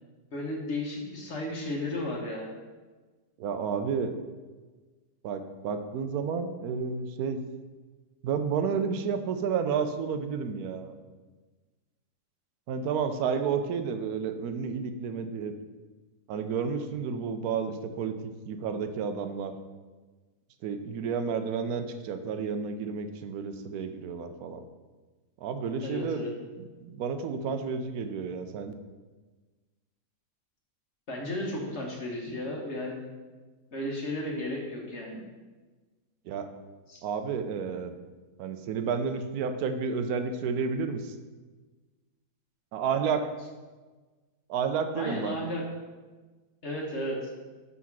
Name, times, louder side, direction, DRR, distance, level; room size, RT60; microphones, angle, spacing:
voice 1, 0.3-2.5 25.8-26.3 31.1-33.1 33.7-35.2 36.9-37.0 44.9-45.6 46.6-47.2, left 1 dB, 45° left, -1 dB, 1.3 m, -34 dB
voice 2, 3.4-4.1 5.2-7.4 8.2-10.9 12.7-15.5 16.3-18.1 18.5-19.5 20.6-24.6 25.4-26.2 26.6-28.7 36.3-36.5 37.0-37.9 38.4-41.2 42.7-43.3 44.5-45.3, right 6 dB, 70° right, 8 dB, 1.0 m, -31 dB
6.2 x 4.1 x 5.8 m, 1.3 s
omnidirectional pair, 1.8 m